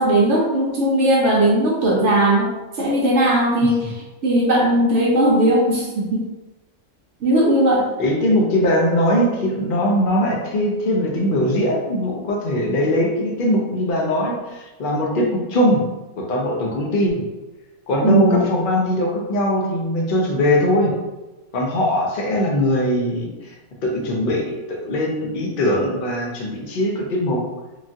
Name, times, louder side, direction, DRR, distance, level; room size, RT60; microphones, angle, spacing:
voice 1, 0.0-2.5 2.8-3.8 4.2-6.2 7.2-7.9 18.0-18.4, right 1 dB, 65° right, -3 dB, 0.8 m, -17 dB
voice 2, 3.6-3.9 8.0-15.8 16.2-17.1 17.9-20.9 21.5-23.5 23.8-27.4, left 1 dB, 70° left, -1 dB, 0.5 m, -21 dB
3.1 x 2.3 x 2.6 m, 1.1 s
omnidirectional pair, 1.6 m